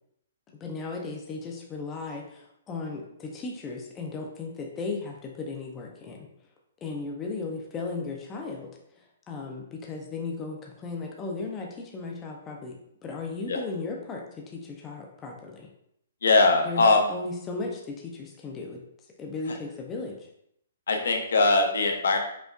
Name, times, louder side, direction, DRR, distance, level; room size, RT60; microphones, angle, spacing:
voice 1, 0.6-6.3 6.8-8.7 9.0-12.8 13.0-15.7 16.6-16.8 17.1-18.8 19.2-20.2, left 3 dB, 10° left, 0 dB, 0.3 m, -36 dB
voice 2, 16.2-17.1 20.9-22.2, left 3 dB, 85° left, 4 dB, 0.7 m, -21 dB
5.0 x 2.2 x 2.4 m, 0.73 s
hypercardioid pair, 180°, 0 cm